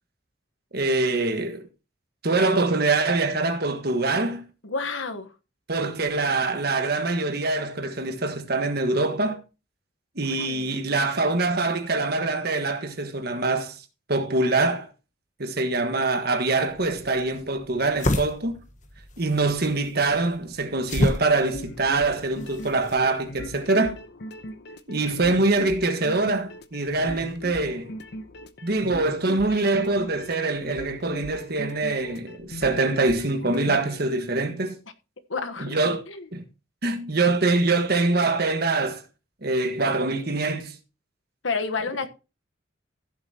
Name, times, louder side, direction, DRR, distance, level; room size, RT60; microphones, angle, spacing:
voice 1, 0.7-1.7 2.2-4.4 5.7-9.4 10.1-13.8 14.1-14.9 15.4-18.6 19.2-24.0 24.9-27.9 28.6-34.8 35.6-36.0 36.3-36.4 36.8-39.0 39.4-40.8, right 3 dB, 50° right, 1.5 m, -24 dB
voice 2, 4.6-5.3 10.2-10.8 35.3-35.8 36.1-36.3 41.4-42.1, left 4 dB, 75° left, 1.2 m, -30 dB
sound 1, 16.7-23.0, left 1 dB, 40° left, 1.3 m, -31 dB
sound 2, 21.3-34.2, left 1 dB, 55° left, 0.9 m, -40 dB
15.5 x 7.4 x 2.9 m
head